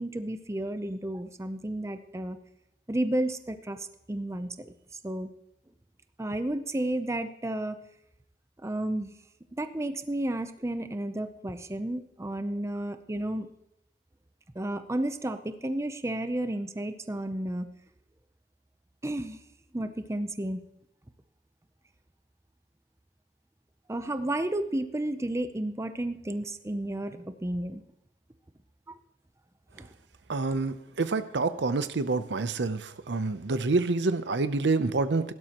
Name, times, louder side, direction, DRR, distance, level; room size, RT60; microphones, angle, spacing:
voice 1, 0.0-2.4 2.9-4.7 5.0-5.3 6.2-7.8 8.6-9.1 9.5-13.5 14.6-17.7 19.0-19.4 19.7-20.6 23.9-27.8 28.9-29.0 29.7-29.9, right 1 dB, 15° right, 9 dB, 0.6 m, -32 dB
voice 2, 30.3-35.3, right 3 dB, 85° right, 12 dB, 0.7 m, -27 dB
16.5 x 12.0 x 3.0 m, 0.81 s
head